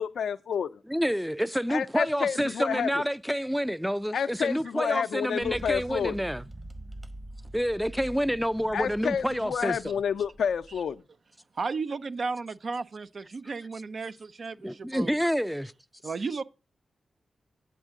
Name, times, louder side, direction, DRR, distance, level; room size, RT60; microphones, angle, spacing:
voice 1, 0.0-0.7 1.7-2.9 4.1-6.1 8.7-11.0, left 7 dB, 80° left, 0.4 m, -29 dB
voice 2, 0.9-6.4 7.5-9.8 14.6-15.7, equal, ahead, 0.4 m, -28 dB
sound 1, 5.4-11.0, right 1 dB, 30° right, 1.1 m, -45 dB
voice 3, 11.5-15.1 16.0-16.4, right 4 dB, 60° right, 0.5 m, -34 dB
9.1 x 8.0 x 3.6 m
cardioid pair, 45°, 0 cm